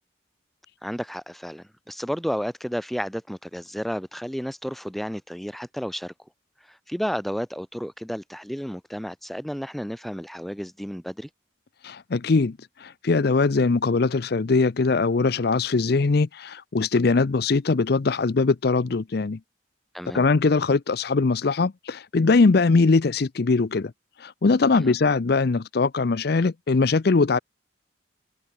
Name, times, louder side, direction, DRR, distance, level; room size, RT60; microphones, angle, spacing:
voice 1, 0.8-6.1 6.6-11.3 19.9-20.2 24.7-24.9, equal, ahead, 0.7 m, -32 dB
voice 2, 11.8-19.4 20.1-23.9 24.2-27.4, left 4 dB, 55° left, 0.5 m, -21 dB
head